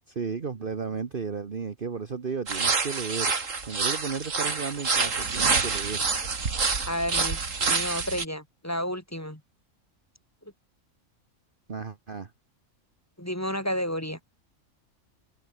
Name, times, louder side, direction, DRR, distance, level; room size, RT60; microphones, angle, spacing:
voice 1, 0.1-3.3 3.7-6.0 11.7-12.3, right 5 dB, 45° right, 1.3 m, -34 dB
sound 1, 2.5-8.2, right 4 dB, 70° right, 2.7 m, -27 dB
voice 2, 6.9-9.4 13.2-14.2, equal, 10° left, 3.4 m, -31 dB
open air
omnidirectional pair, 1.4 m